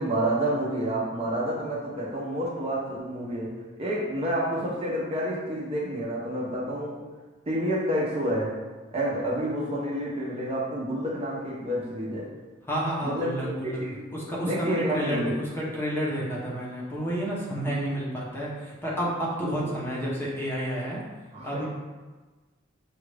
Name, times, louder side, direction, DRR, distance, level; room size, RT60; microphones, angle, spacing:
voice 1, 0.0-3.5 3.8-7.0 7.5-8.6 8.9-12.3 13.0-13.5 13.8-14.0 14.4-15.4 19.4-19.7 21.3-21.7, right 1 dB, 30° right, -5 dB, 0.7 m, -29 dB
voice 2, 12.7-13.8 14.1-21.0 21.4-21.7, equal, 10° left, -6 dB, 0.8 m, -30 dB
6.3 x 2.4 x 3.3 m, 1.3 s
head